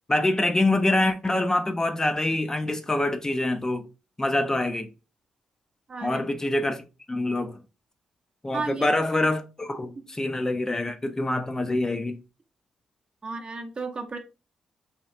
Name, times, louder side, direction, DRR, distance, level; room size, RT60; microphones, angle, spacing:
voice 1, 0.1-3.9 4.2-4.9 6.0-7.6 8.4-12.2, left 2 dB, 20° left, 0.5 m, -25 dB
voice 2, 5.9-6.2 8.5-8.9 10.0-10.1 13.2-14.2, right 4 dB, 40° right, 0.6 m, -33 dB
2.8 x 2.3 x 3.1 m
hypercardioid pair, 45°, 3 cm